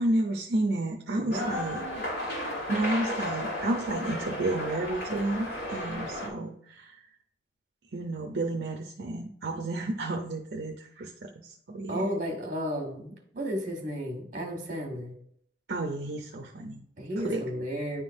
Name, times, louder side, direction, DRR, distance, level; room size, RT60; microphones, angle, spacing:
voice 1, 0.0-1.8 2.7-7.1 7.9-12.1 15.7-16.8 17.2-17.4, right 2 dB, 65° right, 1 dB, 0.6 m, -31 dB
voice 2, 1.2-2.0 11.9-15.1 17.0-18.0, equal, 45° right, 2 dB, 1.5 m, -33 dB
sound 1, 1.3-6.3, left 1 dB, 85° left, 2.6 m, -34 dB
10.0 x 3.8 x 2.6 m, 0.67 s
head